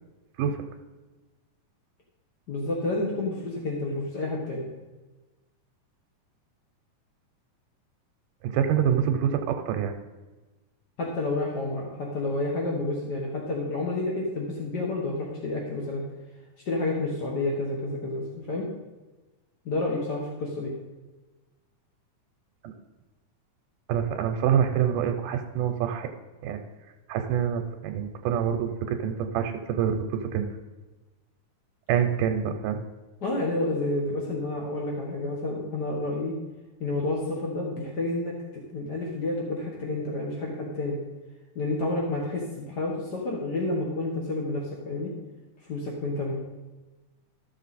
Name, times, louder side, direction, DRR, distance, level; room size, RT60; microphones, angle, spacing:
voice 1, 2.5-4.7 11.0-16.0 16.7-18.7 19.6-20.7 33.2-36.3 36.8-41.0 41.5-45.1 45.7-46.4, left 2 dB, 55° left, -2 dB, 1.1 m, -30 dB
voice 2, 8.4-9.9 22.6-22.7 23.9-26.1 26.4-26.6 27.1-30.4 31.9-32.8, right 8 dB, 85° right, 5 dB, 2.3 m, -26 dB
13.5 x 6.8 x 4.1 m, 1.2 s
omnidirectional pair, 3.7 m